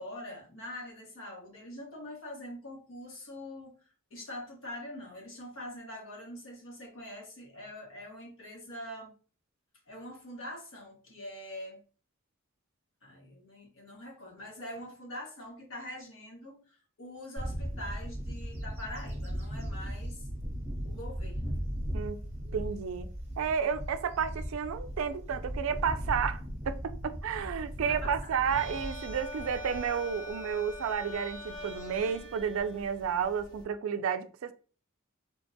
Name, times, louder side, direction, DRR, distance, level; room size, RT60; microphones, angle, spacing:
voice 1, 0.0-9.1 9.9-11.8 13.0-20.3 20.8-21.6 27.8-28.3, left 1 dB, 70° left, 1.1 m, -44 dB
Bird / Wind, 17.4-30.1, equal, 30° right, 0.8 m, -37 dB
voice 2, 22.5-23.1 23.4-26.4 26.7-34.5, right 7 dB, 75° right, 0.3 m, -31 dB
sound 1, 28.4-33.6, left 1 dB, 20° left, 0.7 m, -43 dB
3.4 x 2.1 x 2.6 m
head